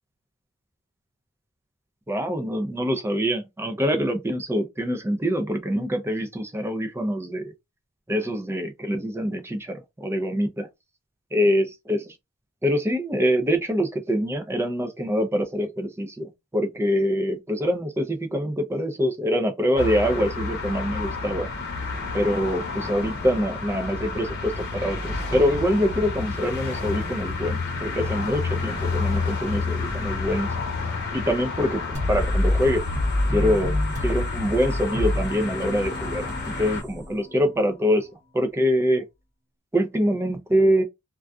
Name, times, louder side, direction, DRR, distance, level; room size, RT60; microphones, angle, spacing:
voice 1, 2.1-7.5 8.1-10.7 11.3-12.1 12.6-21.5 22.1-30.5 31.1-31.8 32.1-32.8 33.3-38.1 38.3-39.0 39.7-40.8, equal, 10° right, 0.4 m, -25 dB
sound 1, 19.8-36.8, left 4 dB, 50° left, 0.8 m, -30 dB
sound 2, 31.9-37.6, left 1 dB, 75° right, 1.0 m, -27 dB
2.5 x 2.3 x 2.2 m
head